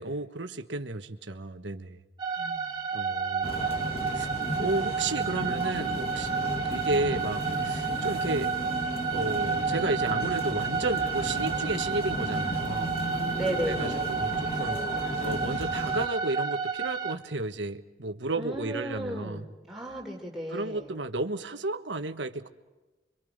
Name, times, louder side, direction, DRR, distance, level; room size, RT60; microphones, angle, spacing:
voice 1, 0.0-2.0 2.9-3.8 4.1-4.3 4.6-6.3 6.7-8.5 9.1-13.0 13.7-14.8 15.2-19.4 20.5-22.5, right 2 dB, 80° right, 8 dB, 1.4 m, -33 dB
sound 1, 2.2-17.1, right 5 dB, 25° right, 2.1 m, -31 dB
voice 2, 2.4-2.8 13.3-15.0 18.4-21.0, right 1 dB, ahead, -2 dB, 4.0 m, -36 dB
sound 2, 3.4-16.1, left 1 dB, 30° left, 1.2 m, -35 dB
29.5 x 25.0 x 5.3 m, 1.2 s
head